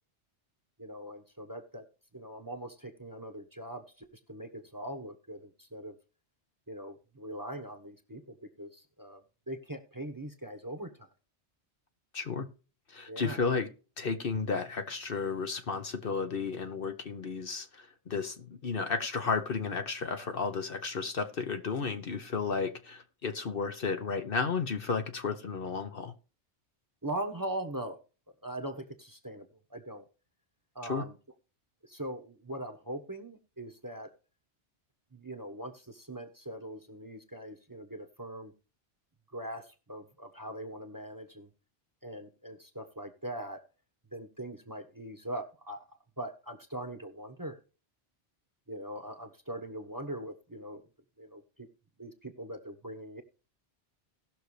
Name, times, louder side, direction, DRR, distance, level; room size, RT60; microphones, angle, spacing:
voice 1, 0.8-1.8 2.1-5.9 6.7-11.1 13.1-13.5 27.0-28.0 28.4-30.0 30.7-31.1 31.8-34.1 35.1-38.5 39.3-41.5 42.0-43.6 44.1-45.9 46.2-47.6 48.7-50.8 51.2-51.7 52.0-53.2, right 1 dB, 20° right, 1.2 m, -41 dB
voice 2, 12.1-12.4 12.9-13.7 14.0-26.1 30.9-31.0, left 5 dB, 55° left, 1.1 m, -33 dB
18.5 x 6.4 x 3.2 m
omnidirectional pair, 1.2 m